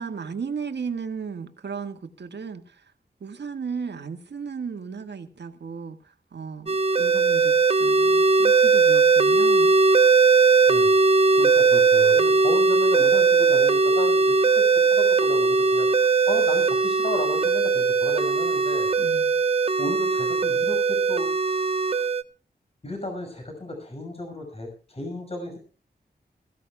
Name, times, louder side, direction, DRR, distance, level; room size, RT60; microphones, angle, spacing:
voice 1, 0.0-2.8 3.2-6.0 6.3-9.8 19.0-19.4, right 6 dB, 85° right, 1.9 m, -35 dB
sound 1, 6.7-22.2, right 4 dB, 35° right, 1.0 m, -19 dB
voice 2, 11.3-15.9 16.3-18.9 19.8-22.1 22.8-25.6, left 1 dB, 35° left, 6.0 m, -34 dB
22.0 x 16.0 x 2.4 m
wide cardioid pair, 115°, 17 cm